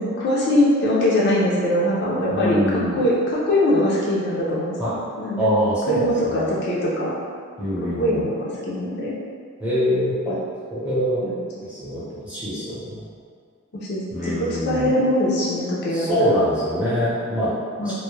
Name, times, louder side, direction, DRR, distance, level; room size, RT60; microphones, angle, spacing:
voice 1, 0.0-7.1 8.0-9.1 10.3-10.4 11.2-11.3 13.7-16.1 17.8-17.9, left 1 dB, 50° left, -6 dB, 0.4 m, -22 dB
voice 2, 2.3-3.0 4.8-5.0 5.3-6.6 7.6-8.3 9.6-10.4 10.7-11.2 11.7-13.0 14.1-15.0 15.9-17.9, equal, 5° right, -11 dB, 0.7 m, -24 dB
2.1 x 2.0 x 3.0 m, 2.1 s
head